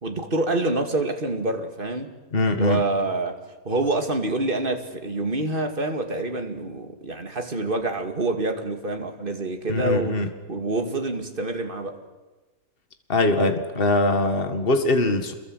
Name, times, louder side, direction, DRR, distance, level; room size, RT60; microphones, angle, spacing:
voice 1, 0.0-2.2 2.6-3.4 3.6-10.2 10.5-12.0, right 2 dB, 35° right, 5 dB, 2.5 m, -26 dB
voice 2, 2.3-2.8 9.7-10.3 13.1-15.3, left 2 dB, 40° left, 7 dB, 2.1 m, -22 dB
28.0 x 22.5 x 8.0 m, 1.2 s
omnidirectional pair, 1.6 m